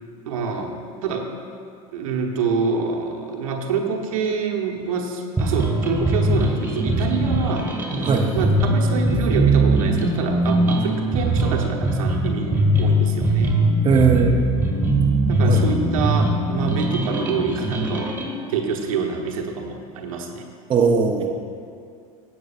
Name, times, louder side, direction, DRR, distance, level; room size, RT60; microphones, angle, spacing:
voice 1, 0.2-1.3 1.9-7.7 8.3-13.6 15.3-18.2 18.5-20.5, right 5 dB, 65° right, 1 dB, 1.1 m, -26 dB
sound 1, 5.4-18.3, right 2 dB, 10° right, 1.6 m, -21 dB
sound 2, 6.4-17.5, left 6 dB, 20° left, 2.4 m, -36 dB
voice 2, 13.8-14.4 15.5-15.6 20.7-21.4, right 5 dB, 25° right, 2 dB, 0.8 m, -18 dB
16.0 x 8.5 x 2.4 m, 2.3 s
figure-of-eight pair, 75°, 19 cm